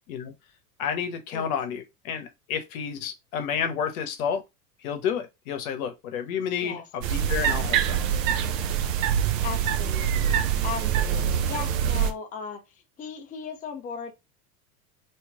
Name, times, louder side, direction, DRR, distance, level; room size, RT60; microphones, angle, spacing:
voice 1, 0.8-4.4 4.8-8.0, left 7 dB, 65° left, 1.0 m, -30 dB
sound 1, 7.0-12.1, right 9 dB, 55° right, 0.8 m, -25 dB
voice 2, 9.4-12.6 13.0-14.1, left 7 dB, 15° left, 0.6 m, -37 dB
3.1 x 3.0 x 3.5 m
hypercardioid pair, 95°, 47 cm